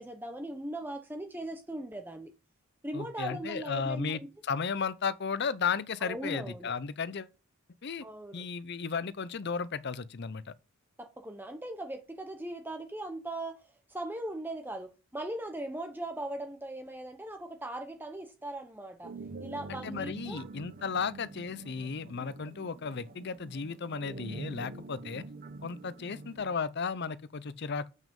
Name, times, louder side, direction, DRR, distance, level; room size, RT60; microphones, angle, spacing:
voice 1, 0.0-2.3 2.8-4.3 6.0-6.7 8.0-8.4 11.0-13.6 13.9-19.1 19.4-20.5 22.2-22.3, right 1 dB, 10° right, 0.8 m, -39 dB
voice 2, 2.9-7.3 7.8-8.0 8.3-10.5 19.8-25.2 25.6-27.9, left 5 dB, 50° left, 0.6 m, -34 dB
sound 1, 19.0-26.5, right 3 dB, 40° right, 0.7 m, -46 dB
7.5 x 6.1 x 5.3 m
head